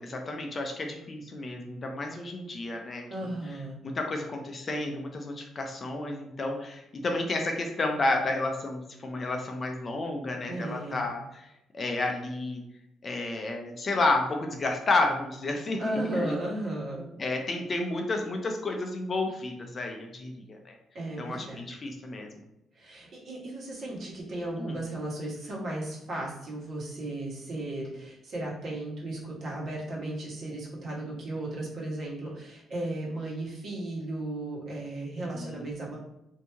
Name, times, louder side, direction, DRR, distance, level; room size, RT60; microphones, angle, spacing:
voice 1, 0.0-3.0 3.8-11.5 11.7-12.6 13.0-15.8 16.1-16.4 17.2-20.7 21.2-22.3 24.6-24.8 35.3-35.7, left 2 dB, 30° left, 3 dB, 0.4 m, -31 dB
voice 2, 3.1-3.8 10.5-11.1 15.8-17.1 20.9-21.6 22.7-36.0, right 1 dB, 50° right, -4 dB, 1.2 m, -35 dB
3.0 x 2.6 x 3.4 m, 0.85 s
cardioid pair, 145°, 0 cm